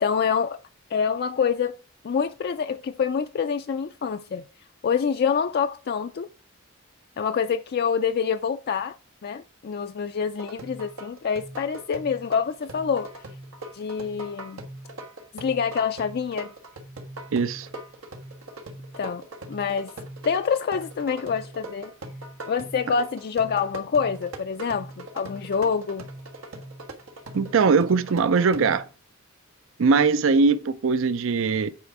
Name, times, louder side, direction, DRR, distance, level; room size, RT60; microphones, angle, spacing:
voice 1, 0.0-0.6 0.9-1.8 2.0-4.4 4.8-6.3 7.2-8.9 9.2-13.1 13.7-14.6 15.3-16.5 19.0-19.2 19.5-19.9 20.2-21.9 22.5-26.1, left 6 dB, 50° left, 0.4 m, -26 dB
sound 1, 10.4-28.7, right 1 dB, 90° right, 1.5 m, -41 dB
voice 2, 17.3-17.7 27.3-28.9 29.8-31.7, right 4 dB, 65° right, 0.5 m, -21 dB
8.6 x 4.9 x 4.6 m
head